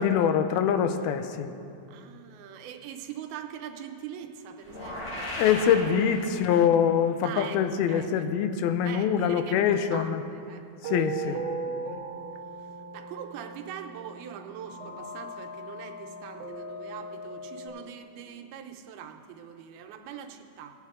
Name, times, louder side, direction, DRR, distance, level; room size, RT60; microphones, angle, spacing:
voice 1, 0.0-1.5 5.4-10.2 10.8-11.4, left 8 dB, 85° left, 9 dB, 2.5 m, -24 dB
voice 2, 1.9-5.4 7.2-7.6 7.9-8.3 8.8-10.6 11.0-11.4 12.9-20.7, right 9 dB, 90° right, 6 dB, 2.7 m, -42 dB
sound 1, 4.6-6.8, left 1 dB, 55° left, 4.5 m, -36 dB
sound 2, 8.3-17.7, right 3 dB, 70° right, 1.6 m, -39 dB
19.0 x 8.1 x 3.6 m, 2.6 s
omnidirectional pair, 4.3 m